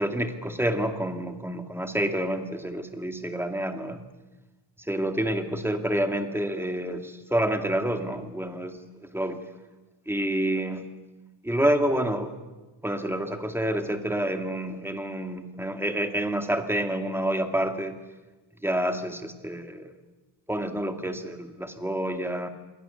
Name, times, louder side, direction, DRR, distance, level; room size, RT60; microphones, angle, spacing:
voice 1, 0.0-4.0 4.9-9.4 10.1-10.9 11.4-12.3 12.8-18.0 18.6-19.9 20.5-22.5, right 1 dB, 5° right, 6 dB, 2.3 m, -28 dB
28.5 x 22.0 x 7.0 m, 1.2 s
cardioid pair, 125°, 46 cm